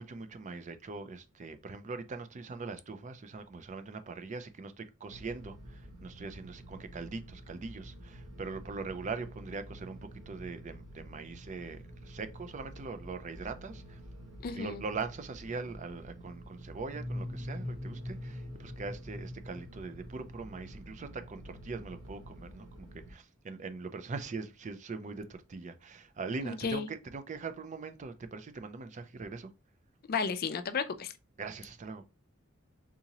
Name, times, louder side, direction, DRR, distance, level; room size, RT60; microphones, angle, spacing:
voice 1, 0.0-14.0 14.5-29.5 31.4-32.0, right 4 dB, 35° right, 0.4 m, -41 dB
sound 1, 5.1-23.1, right 1 dB, 80° right, 1.2 m, -49 dB
voice 2, 14.4-14.8 26.4-26.9 30.1-31.1, left 5 dB, 45° left, 0.4 m, -33 dB
sound 2, 16.8-20.5, left 1 dB, 5° right, 0.9 m, -41 dB
3.7 x 2.8 x 2.9 m
head